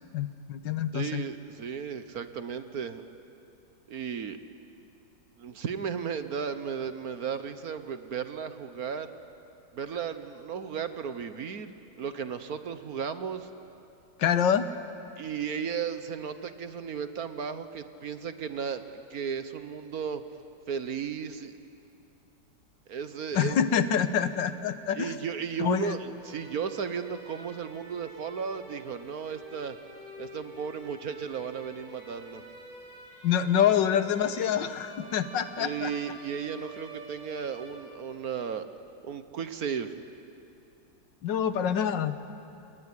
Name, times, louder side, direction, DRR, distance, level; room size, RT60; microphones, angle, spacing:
voice 1, 0.1-1.2 14.2-14.7 23.3-25.1 25.6-26.0 33.2-35.9 41.2-42.2, left 8 dB, 75° left, 11 dB, 1.6 m, -26 dB
voice 2, 0.9-3.0 3.9-4.4 5.4-9.1 9.7-13.5 15.2-20.2 20.7-21.5 22.9-23.6 24.9-29.8 30.2-32.4 35.6-38.7 39.0-40.0, right 7 dB, 55° right, 10 dB, 1.3 m, -35 dB
sound 1, 26.1-38.2, equal, 85° right, 5.6 m, -48 dB
29.5 x 19.0 x 9.9 m, 2.8 s
omnidirectional pair, 2.0 m